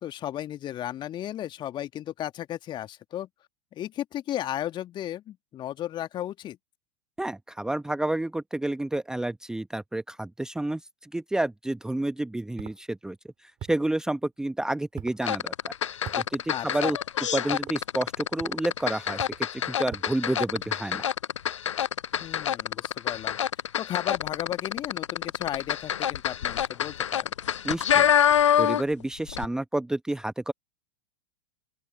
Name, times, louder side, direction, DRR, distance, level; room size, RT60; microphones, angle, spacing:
voice 1, 0.0-3.3 3.7-6.6 16.5-16.9 22.2-23.4 23.8-27.3, left 12 dB, 30° left, 2.2 m, -34 dB
voice 2, 7.2-13.2 13.4-15.5 16.2-17.0 17.3-21.0 27.6-28.1 28.6-30.5, right 1 dB, 5° right, 1.1 m, -30 dB
sound 1, 12.6-12.8 13.6-13.9 15.0-15.2 16.0-16.3 17.5-17.8 18.4-18.6 19.2-19.5 19.9-20.2, right 12 dB, 30° right, 2.5 m, -41 dB
sound 2, 15.2-29.0 29.3-29.4, left 9 dB, 70° left, 0.4 m, -26 dB
open air
figure-of-eight pair, 90°, 16 cm